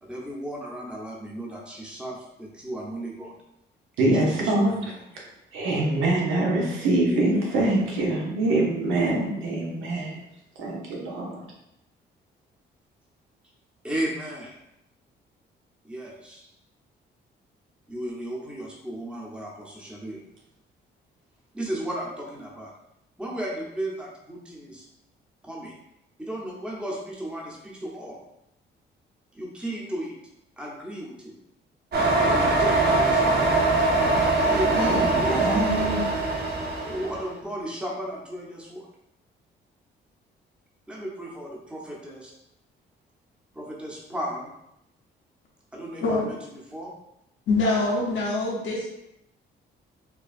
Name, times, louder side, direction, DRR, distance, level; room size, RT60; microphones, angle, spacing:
voice 1, 0.0-3.3 4.0-5.0 7.1-7.6 13.8-14.6 15.8-16.5 17.9-20.2 21.5-22.7 23.2-24.8 25.4-25.7 26.2-28.2 29.3-30.2 30.6-31.3 32.2-33.5 34.4-35.1 36.8-38.9 40.9-42.3 43.5-44.5 45.7-46.4 46.7-46.9, right 1 dB, 5° right, -3 dB, 0.8 m, -35 dB
voice 2, 4.0-5.0 5.5-10.2 10.6-11.4 34.7-36.1, right 2 dB, 90° right, -2 dB, 1.0 m, -24 dB
sound 1, 31.9-37.2, right 2 dB, 55° right, 0.8 m, -22 dB
voice 3, 47.5-48.9, left 2 dB, 70° left, -4 dB, 0.9 m, -24 dB
4.5 x 2.2 x 2.5 m, 0.82 s
cardioid pair, 90°, 20 cm